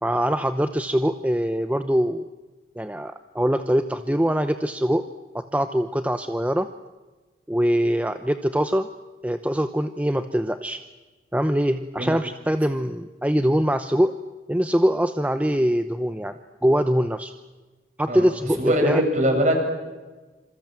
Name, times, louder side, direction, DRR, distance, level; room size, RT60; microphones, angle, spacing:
voice 1, 0.0-2.3 2.8-5.0 5.3-6.7 7.5-8.9 9.2-10.8 11.3-14.1 14.5-17.3 18.0-19.0, equal, 10° right, 9 dB, 0.8 m, -23 dB
voice 2, 18.6-19.5, equal, 40° right, 3 dB, 7.4 m, -21 dB
27.5 x 27.5 x 7.6 m, 1.2 s
head